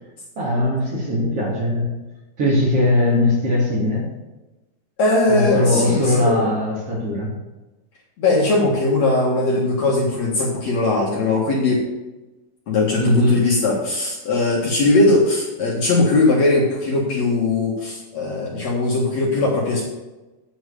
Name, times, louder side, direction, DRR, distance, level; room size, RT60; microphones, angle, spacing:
voice 1, 0.4-1.9 2.4-4.1 5.3-7.3 13.0-13.4, left 1 dB, 45° right, -4 dB, 3.0 m, -20 dB
voice 2, 5.0-6.4 8.2-11.8 12.7-19.8, left 2 dB, 55° left, -3 dB, 2.5 m, -19 dB
9.6 x 6.2 x 7.0 m, 1.1 s
omnidirectional pair, 4.4 m